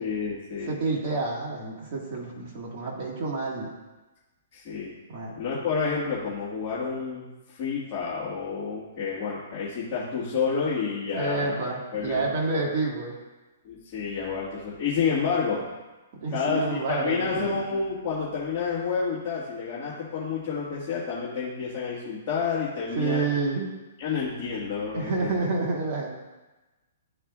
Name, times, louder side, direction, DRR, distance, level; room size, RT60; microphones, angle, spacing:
voice 1, 0.0-0.7 4.5-4.9 5.3-11.5 11.9-12.2 13.6-15.6 16.3-23.3 24.0-25.3, left 5 dB, 30° left, -9 dB, 1.6 m, -29 dB
voice 2, 0.6-3.7 5.1-5.3 11.1-13.2 16.2-17.6 22.9-23.7 24.9-26.1, right 3 dB, 40° right, -2 dB, 1.7 m, -28 dB
11.5 x 4.8 x 2.4 m, 1.1 s
hypercardioid pair, 150°, 0 cm